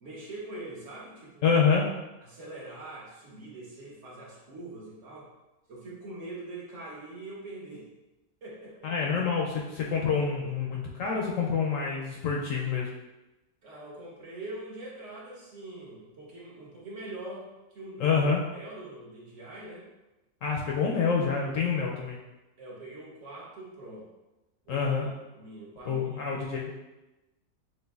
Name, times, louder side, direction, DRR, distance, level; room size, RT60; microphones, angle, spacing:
voice 1, 0.0-1.5 2.2-5.3 5.7-7.9 8.4-8.9 13.6-18.2 18.5-19.9 21.0-21.1 22.6-24.1 24.7-26.4, right 2 dB, 55° right, -4 dB, 1.0 m, -43 dB
voice 2, 1.4-1.9 8.8-12.9 18.0-18.4 20.4-22.2 24.7-25.1 25.8-26.8, left 5 dB, 70° left, -1 dB, 0.8 m, -27 dB
6.2 x 2.4 x 2.3 m, 1.0 s
omnidirectional pair, 1.7 m